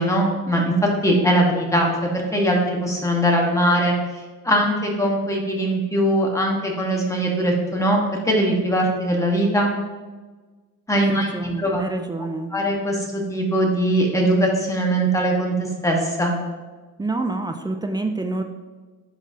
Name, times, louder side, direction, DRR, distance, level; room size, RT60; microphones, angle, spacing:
voice 1, 0.0-3.9 4.4-8.0 8.2-9.7 10.9-11.8 12.5-16.3, right 1 dB, 10° left, -1 dB, 1.3 m, -21 dB
voice 2, 11.0-12.5 17.0-18.4, right 2 dB, 15° right, 5 dB, 0.4 m, -27 dB
10.5 x 4.0 x 2.8 m, 1.3 s
cardioid pair, 130°, 32 cm